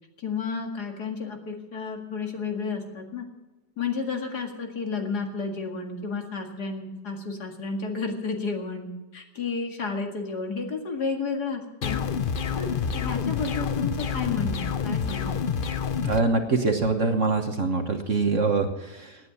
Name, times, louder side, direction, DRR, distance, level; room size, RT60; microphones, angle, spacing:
voice 1, 0.2-3.3 3.8-12.0 12.5-15.3 15.6-15.7, left 4 dB, 60° left, 3 dB, 2.6 m, -32 dB
sound 1, 11.8-16.2, left 6 dB, 85° left, 0.4 m, -28 dB
voice 2, 16.0-19.2, right 3 dB, 45° right, 5 dB, 1.4 m, -24 dB
17.5 x 9.8 x 7.1 m, 1.1 s
omnidirectional pair, 2.0 m